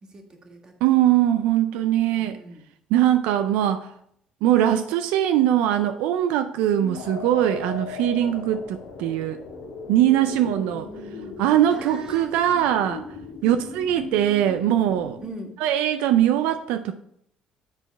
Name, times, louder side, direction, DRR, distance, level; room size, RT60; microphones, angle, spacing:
voice 1, 0.0-1.0 2.2-2.6 6.8-7.2 10.2-11.4 11.7-12.8 13.4-13.8 15.2-15.6, right 3 dB, 35° right, 1.6 m, -40 dB
voice 2, 0.8-2.4 2.9-3.9 4.4-9.4 9.9-10.8 11.4-13.0 13.4-15.2 15.6-16.9, right 11 dB, 85° right, 0.4 m, -21 dB
sound 1, 6.9-15.3, left 5 dB, 85° left, 1.6 m, -38 dB
9.6 x 4.0 x 4.5 m
cardioid pair, 100°, 2 cm